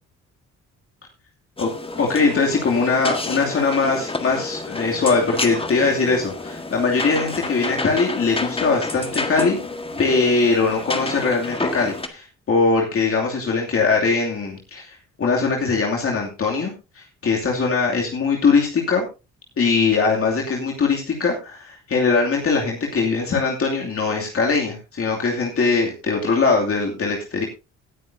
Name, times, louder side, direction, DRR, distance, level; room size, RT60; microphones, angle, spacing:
sound 1, 1.6-12.1, left 3 dB, 20° left, 1.7 m, -29 dB
voice 1, 2.0-9.6 10.0-19.0 19.6-27.4, left 4 dB, 50° left, -1 dB, 2.7 m, -21 dB
18.5 x 9.4 x 2.7 m, 0.29 s
cardioid pair, 90°, 30 cm